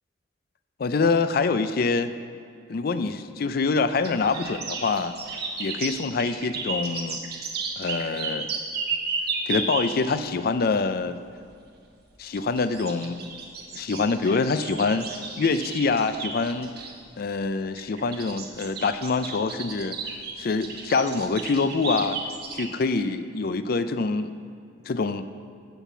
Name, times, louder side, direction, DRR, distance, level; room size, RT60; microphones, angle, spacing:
voice 1, 0.8-2.1 2.7-5.1 5.6-7.2 7.8-8.5 9.5-11.2 12.2-13.2 13.7-15.1 15.4-16.7 17.2-20.0 20.4-22.2 22.5-24.3 24.9-25.2, left 4 dB, 55° left, 11 dB, 0.4 m, -25 dB
sound 1, 4.0-10.1 12.4-16.9 17.8-22.7, right 4 dB, 55° right, 1.1 m, -33 dB
7.5 x 7.0 x 7.2 m, 2.4 s
head